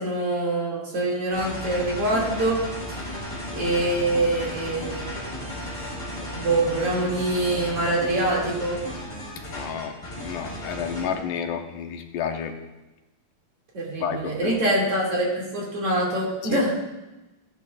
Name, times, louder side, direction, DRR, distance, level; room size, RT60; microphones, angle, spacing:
voice 1, 0.0-2.6 2.9-3.1 3.5-5.1 6.2-8.8 13.7-16.7, right 1 dB, 45° right, -5 dB, 3.4 m, -25 dB
sound 1, 1.3-11.2, equal, 35° left, 4.9 m, -34 dB
voice 2, 9.4-12.5 14.0-14.6 16.5-16.6, left 7 dB, 85° left, 5 dB, 2.5 m, -31 dB
15.0 x 11.0 x 2.5 m, 1.0 s
omnidirectional pair, 3.7 m